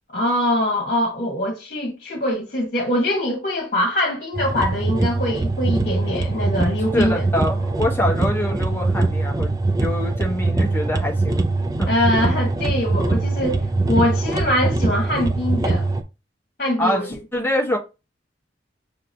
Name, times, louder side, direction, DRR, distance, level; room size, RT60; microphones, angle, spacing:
voice 1, 0.1-7.3 11.9-13.6 13.9-15.9 16.6-17.1, left 1 dB, 50° left, 1.3 m, -23 dB
sound 1, 4.3-16.0, right 2 dB, 20° right, 0.4 m, -22 dB
voice 2, 6.9-9.5 9.8-11.5 11.8-11.9 12.1-12.4 16.8-17.8, left 1 dB, 10° left, 0.7 m, -25 dB
6.6 x 2.9 x 2.6 m
head